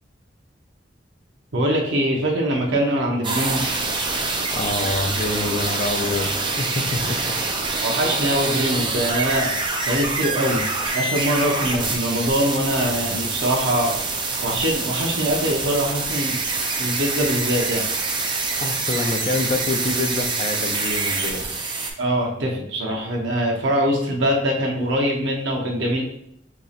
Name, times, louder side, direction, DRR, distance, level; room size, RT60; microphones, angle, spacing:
voice 1, 1.5-3.8 7.8-9.6 9.9-10.7 10.9-16.4 16.8-17.8 22.0-26.0, equal, 80° right, 0 dB, 0.6 m, -23 dB
sound 1, 3.2-21.9, right 3 dB, 25° right, 0.4 m, -25 dB
voice 2, 4.5-7.2 18.6-21.4, left 2 dB, 40° left, 5 dB, 0.4 m, -26 dB
2.9 x 2.7 x 4.0 m, 0.75 s
head